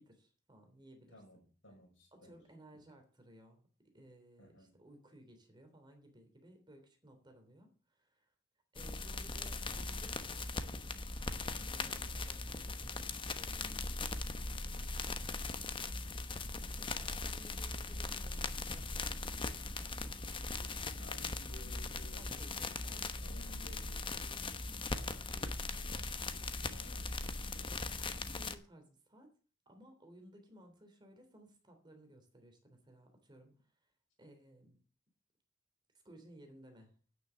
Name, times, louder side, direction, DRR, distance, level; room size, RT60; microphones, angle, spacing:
voice 1, 0.0-1.2 2.1-3.6 3.9-8.3 8.7-11.0 11.5-15.0 15.4-16.0 16.4-21.4 22.0-23.1 24.3-24.5 27.8-29.3 29.6-33.5 34.2-34.8 36.0-37.0, right 1 dB, 25° right, 5 dB, 3.3 m, -59 dB
voice 2, 1.1-2.4 2.7-2.8 4.4-4.8 11.9-12.2 21.0-24.5 24.9-28.1, left 1 dB, 70° left, 1 dB, 6.0 m, -58 dB
sound 1, 8.7-28.5, left 3 dB, 25° left, 1.0 m, -40 dB
9.6 x 9.4 x 7.0 m, 0.38 s
head